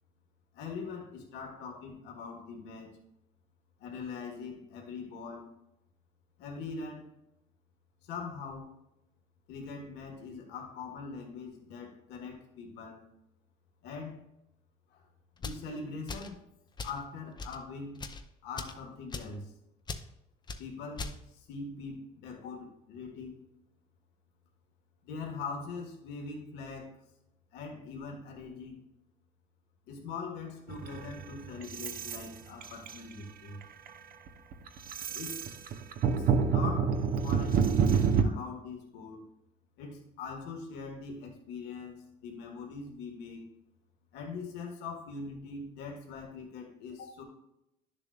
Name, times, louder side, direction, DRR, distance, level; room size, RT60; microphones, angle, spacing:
voice 1, 0.5-2.9 3.8-5.5 6.4-7.1 8.0-8.7 9.5-13.0 13.8-14.2 14.9-15.0 15.4-16.4 16.8-18.0 18.4-19.5 20.6-23.4 25.0-26.9 27.5-28.8 29.9-33.6 35.1-35.4 36.2-39.3 39.8-43.5 44.1-47.2, left 4 dB, 90° left, 0 dB, 1.6 m, -42 dB
sound 1, 15.4-15.7 16.1-16.4 16.8-17.0 17.4-17.6 18.0-18.2 18.6-18.8 19.1-19.4 19.9-20.1 20.5-20.6 21.0-21.2, left 4 dB, 25° left, 0.6 m, -39 dB
sound 2, 30.7-32.3 32.6-33.1 33.6-33.9 34.3-38.2, right 6 dB, 60° right, 0.7 m, -28 dB
11.0 x 6.9 x 2.4 m, 0.84 s
cardioid pair, 110°, 17 cm